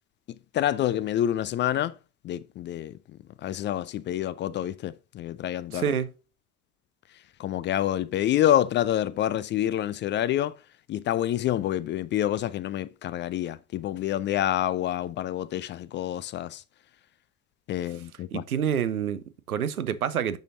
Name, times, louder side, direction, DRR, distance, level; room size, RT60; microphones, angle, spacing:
voice 1, 0.5-1.9 2.2-2.9 3.4-5.8 7.4-10.6 10.9-16.6 17.7-18.4, left 12 dB, 25° left, 0.4 m, -27 dB
voice 2, 5.7-6.1 18.3-20.4, right 8 dB, 80° right, 0.8 m, -28 dB
9.1 x 6.8 x 2.6 m
figure-of-eight pair, 60°, 43 cm